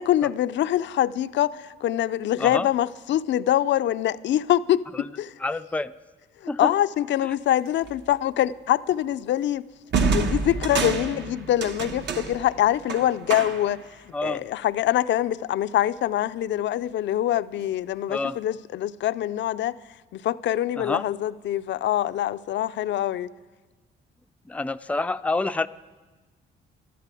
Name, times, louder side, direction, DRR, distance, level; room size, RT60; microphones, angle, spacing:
voice 1, 0.0-4.8 5.2-5.3 6.6-9.6 10.1-13.8 14.2-19.8 20.1-23.3, left 12 dB, 65° left, 14 dB, 0.5 m, -24 dB
voice 2, 5.4-5.9 6.5-6.7 7.2-7.3 14.1-14.4 18.1-18.4 20.8-21.0 24.5-25.7, left 2 dB, 5° left, 10 dB, 0.4 m, -28 dB
sound 1, 7.9-8.1 9.9-13.9, right 4 dB, 60° right, 1.1 m, -28 dB
12.5 x 12.0 x 8.3 m, 1.3 s
cardioid pair, 90°, 20 cm